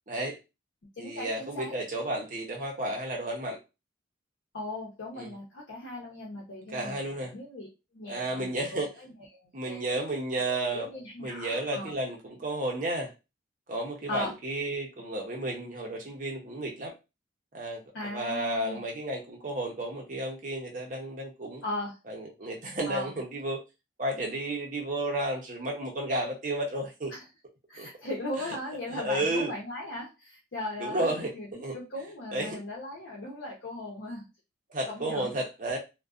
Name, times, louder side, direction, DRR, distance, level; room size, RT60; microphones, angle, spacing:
voice 1, 0.1-0.4 1.0-3.6 5.1-5.3 6.7-7.3 8.1-8.9 9.5-10.9 11.2-13.1 13.7-16.9 17.5-21.6 22.1-23.6 24.0-27.1 27.8-27.9 28.4-28.6 28.9-29.5 30.8-31.8 32.3-32.6 34.7-35.8, right 1 dB, 40° right, 0 dB, 0.7 m, -32 dB
voice 2, 1.0-1.7 4.5-7.7 7.9-8.9 9.4-10.0 10.4-11.9 14.1-14.3 17.9-18.8 21.6-21.9 22.9-23.2 27.1-27.2 27.7-31.5 31.7-34.3 34.9-35.3, left 1 dB, 75° left, -4 dB, 0.7 m, -38 dB
2.5 x 2.1 x 2.4 m, 0.27 s
head